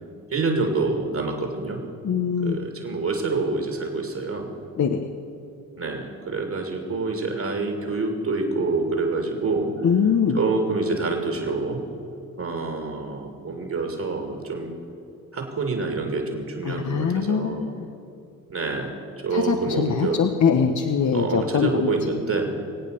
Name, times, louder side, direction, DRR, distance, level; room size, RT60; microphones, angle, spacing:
voice 1, 0.3-1.8 2.4-4.5 5.8-9.7 10.3-11.8 12.4-14.8 15.3-17.8 18.5-18.9 19.2-20.2 21.1-22.5, right 3 dB, 40° right, 2 dB, 2.7 m, -27 dB
voice 2, 2.0-2.6 4.8-5.0 9.8-10.4 16.6-17.9 19.3-21.9, left 6 dB, 40° left, 5 dB, 1.2 m, -22 dB
23.0 x 8.6 x 6.8 m, 2.6 s
hypercardioid pair, 50°, 43 cm